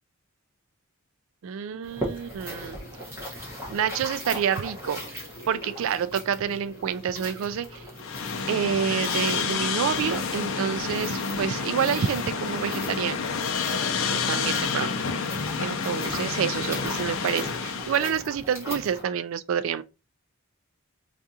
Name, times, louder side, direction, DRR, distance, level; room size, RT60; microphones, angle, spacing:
voice 1, 1.4-2.8 3.7-5.2 5.5-7.8 8.5-13.2 14.1-14.9 15.6-19.8, right 8 dB, 65° right, 0.3 m, -28 dB
sound 1, 1.8-19.0, equal, 10° right, 1.1 m, -40 dB
Chewing mastication, 1.9-18.0, equal, 40° left, 1.0 m, -48 dB
sound 2, 8.0-18.1, left 5 dB, 65° left, 0.5 m, -29 dB
4.6 x 2.4 x 2.7 m
head